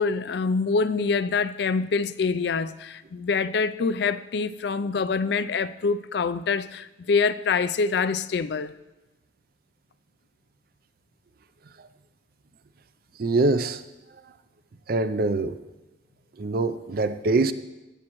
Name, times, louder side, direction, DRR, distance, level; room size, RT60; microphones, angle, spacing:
voice 1, 0.0-8.7, left 4 dB, 60° left, 0.4 m, -25 dB
voice 2, 13.2-13.8 14.9-15.6 16.4-17.5, right 3 dB, 50° right, 0.5 m, -24 dB
17.0 x 7.4 x 3.0 m
head